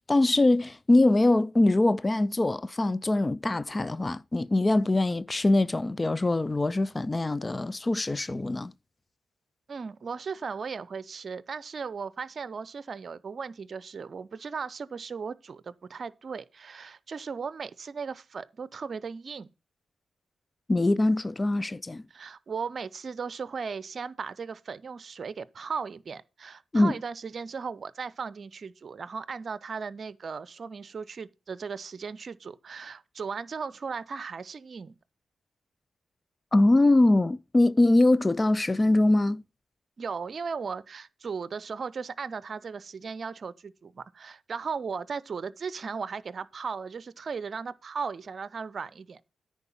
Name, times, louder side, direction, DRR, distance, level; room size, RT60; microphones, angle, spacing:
voice 1, 0.1-8.7 20.7-22.0 26.7-26.9 36.5-39.4, left 2 dB, 30° left, 0.4 m, -23 dB
voice 2, 9.7-19.5 22.1-34.9 40.0-49.3, right 5 dB, 55° right, 0.6 m, -37 dB
9.7 x 4.6 x 7.1 m
supercardioid pair, 45°, 0 cm